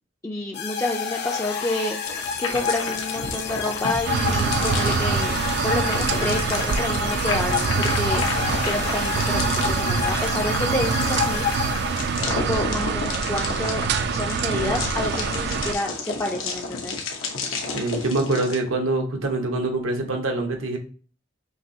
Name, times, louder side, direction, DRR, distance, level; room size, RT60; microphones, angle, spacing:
voice 1, 0.2-5.4 5.6-8.2 8.7-11.5 12.3-13.8 14.1-17.0, left 1 dB, 15° left, 0 dB, 0.4 m, -29 dB
sound 1, 0.5-12.4, left 6 dB, 55° left, 0.7 m, -30 dB
sound 2, 2.0-18.6, left 4 dB, 85° left, 1.0 m, -32 dB
sound 3, 4.0-15.7, right 5 dB, 55° right, 0.3 m, -25 dB
voice 2, 14.5-14.8 17.7-20.8, right 2 dB, 80° right, 3 dB, 1.0 m, -25 dB
5.9 x 2.8 x 2.7 m, 0.41 s
head